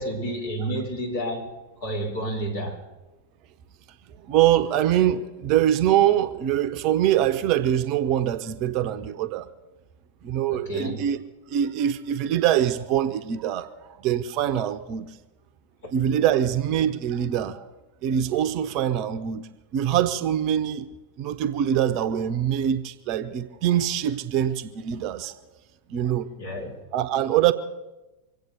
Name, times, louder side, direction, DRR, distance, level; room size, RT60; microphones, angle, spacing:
voice 1, 0.0-2.8 10.5-11.0 15.8-15.9 26.4-26.7, right 1 dB, 60° left, 4.6 m, -30 dB
voice 2, 4.3-9.5 10.2-11.2 11.5-13.7 14.0-15.1 15.9-17.6 18.0-20.9 21.2-25.3 25.9-26.3 26.9-27.5, right 11 dB, 40° right, 0.8 m, -23 dB
24.5 x 8.4 x 6.7 m
figure-of-eight pair, 90°, 0 cm